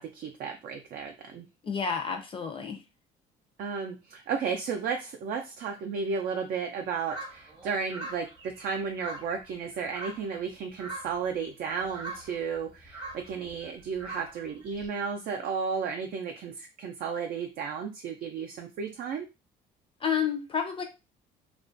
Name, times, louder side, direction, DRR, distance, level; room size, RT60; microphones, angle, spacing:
voice 1, 0.0-1.5 3.6-19.3, right 6 dB, 60° right, 3 dB, 0.4 m, -33 dB
voice 2, 1.6-2.8 20.0-20.8, left 6 dB, 30° left, 5 dB, 0.4 m, -30 dB
sound 1, 7.1-10.5 10.8-11.3 11.7-14.9, right 2 dB, 30° right, 0.8 m, -42 dB
2.4 x 2.1 x 2.5 m, 0.27 s
cardioid pair, 110°, 17 cm